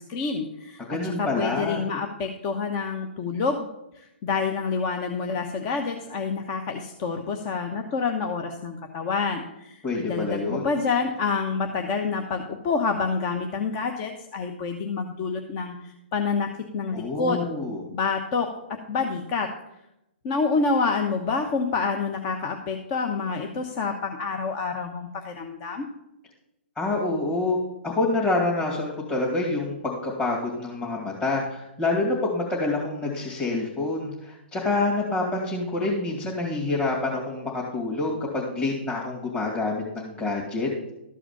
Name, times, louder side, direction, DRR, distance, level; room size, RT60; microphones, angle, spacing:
voice 1, 0.0-3.7 3.9-17.5 17.9-19.5 20.2-25.9, left 4 dB, 35° left, 5 dB, 1.0 m, -28 dB
voice 2, 0.8-1.8 9.8-10.7 16.9-17.8 26.8-27.6 27.8-40.9, left 2 dB, 15° left, -5 dB, 2.3 m, -27 dB
13.0 x 4.9 x 7.2 m, 0.87 s
hypercardioid pair, 140°, 6 cm